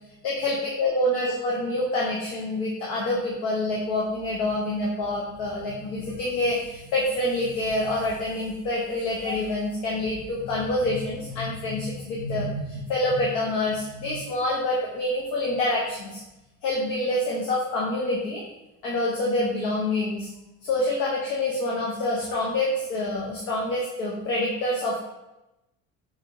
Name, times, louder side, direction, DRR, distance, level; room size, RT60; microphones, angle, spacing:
voice 1, 0.2-16.2 16.6-18.4 18.8-20.3 20.6-25.0, left 1 dB, 70° left, -4 dB, 1.0 m, -27 dB
4.2 x 3.2 x 3.8 m, 0.96 s
cardioid pair, 175°, 33 cm